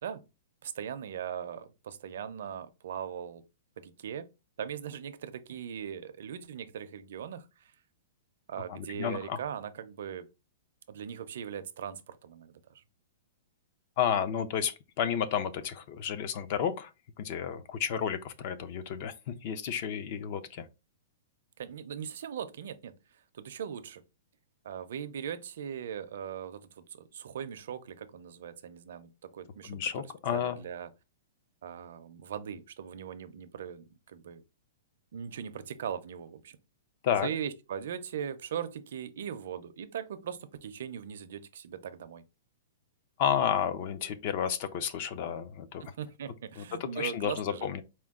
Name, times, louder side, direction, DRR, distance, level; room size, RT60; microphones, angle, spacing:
voice 1, 0.6-3.4 3.8-4.3 4.6-7.7 8.5-10.3 10.9-12.8 21.6-23.0 23.3-24.0 24.6-29.8 30.3-30.9 31.6-34.4 35.1-36.6 37.2-42.2 45.8-47.7, right 8 dB, 60° right, 0.5 m, -39 dB
voice 2, 8.7-9.4 14.0-16.9 17.2-20.7 29.6-30.6 37.0-37.3 43.2-45.8 46.6-46.7 47.0-47.8, left 8 dB, 35° left, 0.4 m, -31 dB
4.4 x 2.2 x 3.6 m
hypercardioid pair, 175°, 0 cm